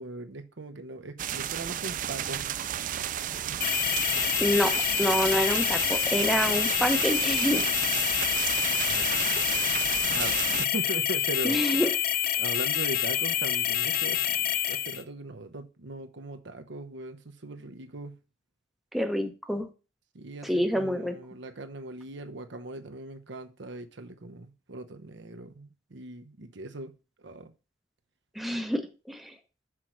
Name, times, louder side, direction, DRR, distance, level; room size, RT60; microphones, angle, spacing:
voice 1, 0.0-2.5 8.8-9.2 10.1-11.6 12.4-18.2 20.1-26.9 27.2-27.5, right 2 dB, 65° right, 0.9 m, -39 dB
sound 1, 1.2-10.7, right 10 dB, 45° right, 0.3 m, -32 dB
sound 2, 3.6-15.0, left 10 dB, 50° left, 0.6 m, -27 dB
voice 2, 4.4-4.7 5.0-7.6 11.4-11.9 18.9-19.7 20.4-21.2 28.4-28.8 29.1-29.3, equal, ahead, 0.9 m, -27 dB
6.2 x 4.6 x 6.2 m
head